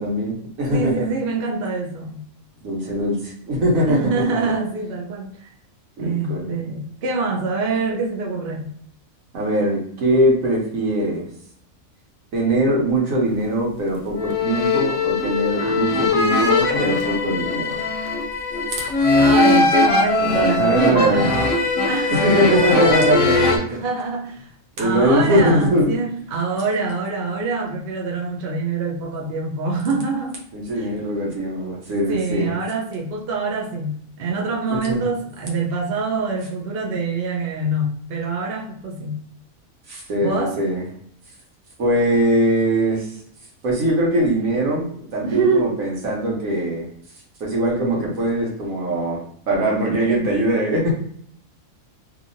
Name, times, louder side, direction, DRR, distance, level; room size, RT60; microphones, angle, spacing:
voice 1, 0.0-1.1 2.6-4.4 6.0-6.5 9.3-11.3 12.3-17.8 20.2-21.3 22.1-23.8 24.8-26.0 30.5-32.5 34.7-35.0 39.9-40.9 41.8-43.1 43.6-46.9 47.4-50.9, right 1 dB, 80° right, 1.4 m, -21 dB
voice 2, 0.7-2.2 3.9-5.5 6.0-8.7 15.6-15.8 19.1-24.5 24.8-30.4 30.7-30.9 32.1-39.2 40.2-40.6 45.2-45.8, right 3 dB, 55° right, 0.7 m, -25 dB
sound 1, 14.1-23.6, left 3 dB, 70° left, 0.8 m, -20 dB
2.9 x 2.5 x 2.5 m
omnidirectional pair, 1.4 m